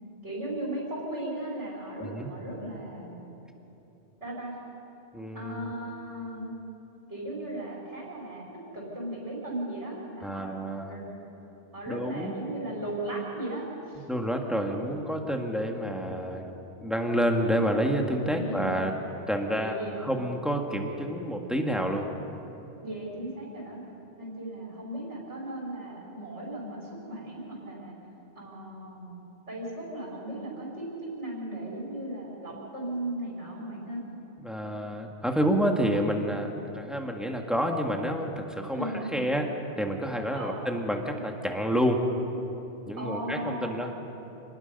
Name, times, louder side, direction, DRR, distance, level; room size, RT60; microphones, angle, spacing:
voice 1, 0.2-3.2 4.2-4.6 5.3-6.5 7.1-8.5 8.7-10.5 10.9-11.1 11.7-14.1 18.4-18.7 19.5-20.0 22.8-23.8 24.2-27.9 28.4-34.0 38.7-39.1 40.3-40.6 43.0-43.8, right 1 dB, 80° right, -5 dB, 5.3 m, -36 dB
voice 2, 5.1-5.9 10.2-10.9 11.9-12.4 14.1-16.5 16.8-18.9 19.3-22.1 34.4-39.5 39.8-42.0 42.9-43.9, equal, ahead, 1 dB, 1.9 m, -29 dB
28.5 x 20.0 x 5.5 m, 3.0 s
omnidirectional pair, 1.2 m